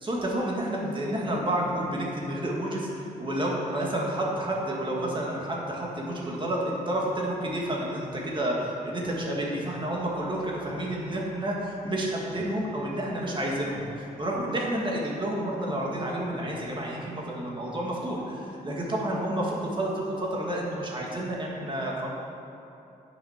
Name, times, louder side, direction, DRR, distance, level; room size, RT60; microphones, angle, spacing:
voice 1, 0.0-22.1, right 1 dB, 30° right, -3 dB, 2.0 m, -30 dB
9.1 x 6.5 x 6.0 m, 2.8 s
wide cardioid pair, 115°, 16 cm